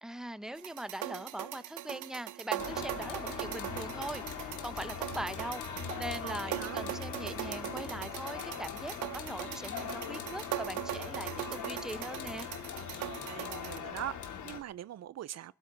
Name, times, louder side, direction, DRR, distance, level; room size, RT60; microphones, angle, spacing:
voice 1, 0.0-12.5, right 1 dB, ahead, 0.9 m, -41 dB
sound 1, 0.6-13.8, right 14 dB, 75° right, 1.0 m, -40 dB
Wind instrument woodwind instrument, 2.5-8.0, left 3 dB, 20° left, 1.1 m, -50 dB
sound 2, 2.6-14.6, left 7 dB, 75° left, 2.6 m, -41 dB
voice 2, 6.2-6.8 13.0-15.5, right 12 dB, 60° right, 0.6 m, -42 dB
24.5 x 8.5 x 6.1 m
cardioid pair, 90°, 30 cm